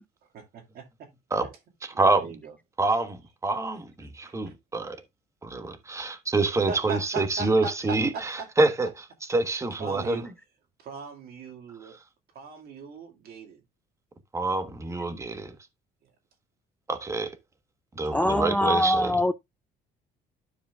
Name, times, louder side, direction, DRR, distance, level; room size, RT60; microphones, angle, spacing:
voice 1, 0.3-1.1 1.9-2.5 4.2-4.5 6.7-8.5 9.8-10.2 10.8-12.0 12.3-13.6 16.0-16.1, right 4 dB, 65° right, 2.0 m, -38 dB
voice 2, 2.0-2.3 2.8-5.0 5.4-8.3 8.6-8.9 9.3-10.3 14.3-15.5 16.9-17.3 18.0-19.2, right 3 dB, 15° right, 1.2 m, -26 dB
voice 3, 18.1-19.3, left 1 dB, 10° left, 0.4 m, -23 dB
12.5 x 5.0 x 2.3 m
cardioid pair, 110°, 17 cm